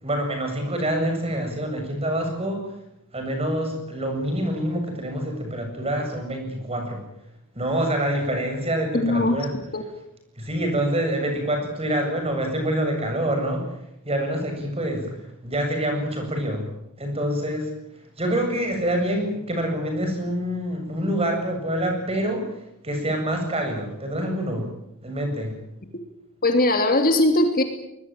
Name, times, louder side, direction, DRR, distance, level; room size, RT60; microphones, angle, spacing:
voice 1, 0.0-2.7 3.1-7.0 7.5-9.5 10.4-13.7 14.1-15.2 15.4-16.6 17.0-17.7 18.2-22.5 22.8-24.7 25.0-25.5, right 1 dB, 25° right, 4 dB, 7.7 m, -26 dB
voice 2, 8.9-9.4 9.7-9.8 26.4-27.6, left 1 dB, 40° left, 6 dB, 2.9 m, -19 dB
24.0 x 21.0 x 9.1 m, 0.82 s
head